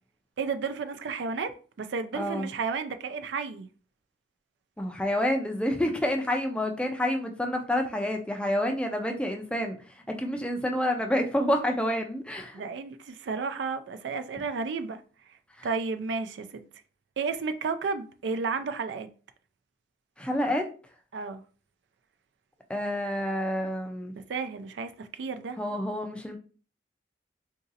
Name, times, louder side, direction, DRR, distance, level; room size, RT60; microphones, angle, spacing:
voice 1, 0.4-1.5 1.8-3.7 12.5-15.0 15.6-16.6 17.2-19.1 21.1-21.4 24.3-25.6, right 4 dB, 80° right, 0.4 m, -32 dB
voice 2, 2.1-2.5 4.8-9.8 10.1-12.6 15.6-15.7 20.2-20.7 22.7-24.1 25.6-26.4, left 1 dB, 5° left, 0.4 m, -28 dB
3.8 x 2.7 x 2.5 m
head